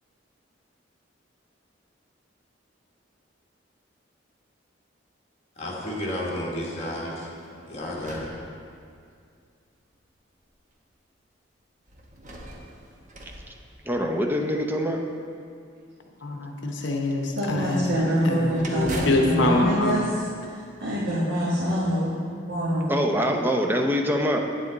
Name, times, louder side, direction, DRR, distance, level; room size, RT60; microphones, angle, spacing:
voice 1, 5.6-7.3 7.7-8.3, left 1 dB, 35° left, -4 dB, 1.6 m, -31 dB
sound 1, 7.2-9.2 9.9-10.0 11.9-14.4 17.8-20.9, right 1 dB, 40° right, 1.0 m, -41 dB
voice 2, 13.8-15.0 22.9-24.4, equal, 10° right, 2 dB, 0.6 m, -24 dB
voice 3, 16.2-20.0, left 2 dB, 70° left, 2 dB, 0.8 m, -25 dB
voice 4, 17.3-20.0 20.5-22.1 22.5-22.9, equal, 65° right, -8 dB, 1.4 m, -25 dB
8.8 x 7.6 x 4.0 m, 2.3 s
head